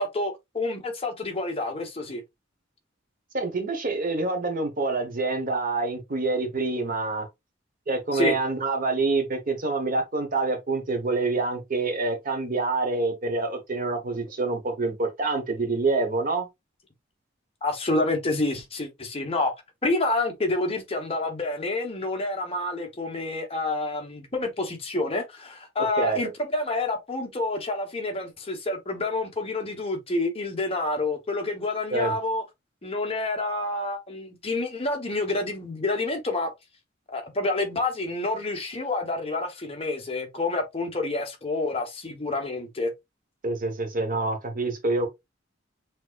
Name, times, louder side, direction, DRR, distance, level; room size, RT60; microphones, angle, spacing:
voice 1, 0.0-2.2 8.1-8.3 17.6-19.5 19.8-32.4 32.8-36.5 37.1-42.9, left 2 dB, 30° left, 1.1 m, -28 dB
voice 2, 3.3-7.3 7.9-16.5 26.0-26.2 31.9-32.1 43.4-45.1, right 3 dB, 45° right, 1.1 m, -26 dB
6.2 x 3.0 x 2.4 m
head